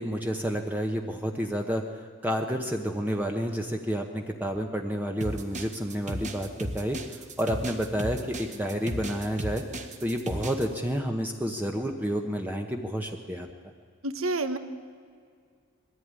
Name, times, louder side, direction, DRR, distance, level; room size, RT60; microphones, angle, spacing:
voice 1, 0.0-7.0 7.4-9.6 10.0-13.5, equal, 10° right, 2 dB, 1.0 m, -30 dB
sound 1, 5.2-10.7, right 1 dB, 35° right, 1.5 m, -35 dB
voice 2, 14.0-14.6, right 2 dB, 70° right, 10 dB, 1.3 m, -28 dB
21.0 x 14.5 x 9.7 m, 2.1 s
head